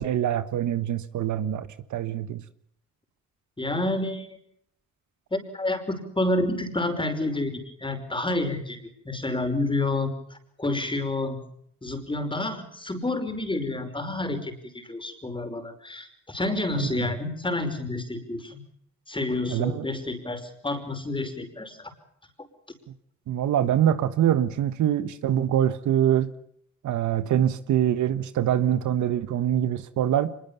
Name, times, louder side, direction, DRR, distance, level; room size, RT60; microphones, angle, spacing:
voice 1, 0.0-2.4 19.5-19.8 23.3-26.3 26.8-30.3, right 10 dB, 70° right, 1.4 m, -24 dB
voice 2, 3.6-4.3 5.3-8.8 9.1-11.4 11.8-18.6 19.1-21.9, left 2 dB, 15° left, 5.4 m, -29 dB
24.5 x 22.0 x 7.2 m
cardioid pair, 90°, 30 cm